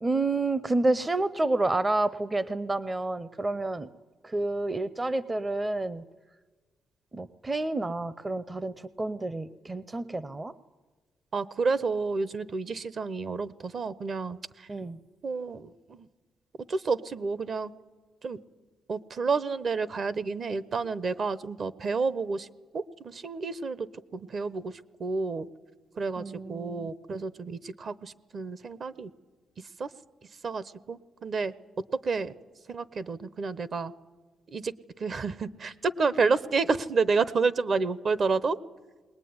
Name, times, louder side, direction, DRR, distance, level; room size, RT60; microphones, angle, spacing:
voice 1, 0.0-3.9 4.2-6.0 7.1-10.5 14.7-15.0 26.2-26.9, right 2 dB, 20° right, 15 dB, 0.6 m, -29 dB
voice 2, 11.3-14.7 15.2-16.1 16.7-17.7 18.2-18.4 18.9-22.5 22.7-25.5 26.0-29.1 29.8-29.9 30.4-31.5 32.0-32.3 32.7-33.9 34.5-34.7 35.0-38.6, right 4 dB, 50° right, 17 dB, 0.9 m, -30 dB
21.0 x 19.5 x 9.6 m, 1.3 s
cardioid pair, 110°, 0 cm